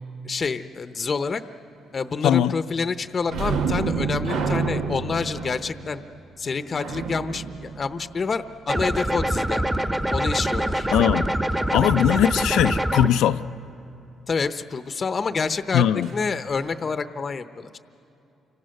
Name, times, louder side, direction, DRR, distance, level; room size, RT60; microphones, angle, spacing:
voice 1, 0.2-1.4 1.9-6.0 6.4-9.6 10.1-10.9 14.3-15.8 16.1-17.8, left 5 dB, 40° left, 0.8 m, -28 dB
sound 1, 3.3-8.7 16.0-16.2 16.5-16.7, right 4 dB, 85° right, 1.4 m, -29 dB
sound 2, 8.7-13.1, right 1 dB, 15° right, 1.3 m, -24 dB
voice 2, 10.9-11.3 11.7-13.4 15.7-16.1, left 10 dB, 85° left, 0.5 m, -20 dB
29.5 x 25.5 x 6.5 m
cardioid pair, 90°, 0 cm